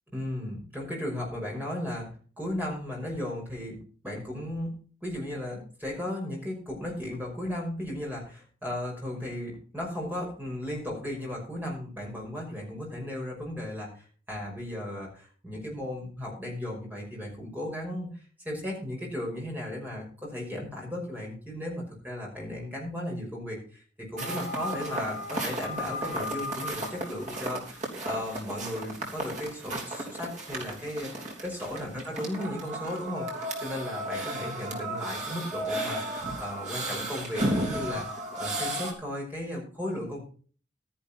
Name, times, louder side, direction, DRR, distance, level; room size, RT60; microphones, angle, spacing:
voice 1, 0.1-2.1 2.4-36.0 36.4-38.1 38.4-40.2, left 1 dB, 10° right, -2 dB, 5.6 m, -35 dB
sound 1, 24.2-38.9, right 1 dB, 40° right, 3.3 m, -34 dB
13.0 x 10.5 x 4.4 m, 0.40 s
head